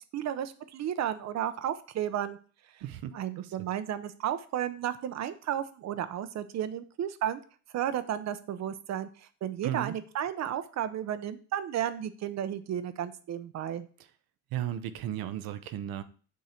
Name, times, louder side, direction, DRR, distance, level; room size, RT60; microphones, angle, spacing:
voice 1, 0.1-2.4 3.1-7.4 7.7-9.1 9.4-13.9, right 10 dB, 50° right, 12 dB, 0.7 m, -33 dB
voice 2, 2.8-3.5 9.6-10.0 14.5-16.0, right 11 dB, 90° right, 11 dB, 0.8 m, -35 dB
8.4 x 3.8 x 4.4 m, 0.40 s
cardioid pair, 145°, 34 cm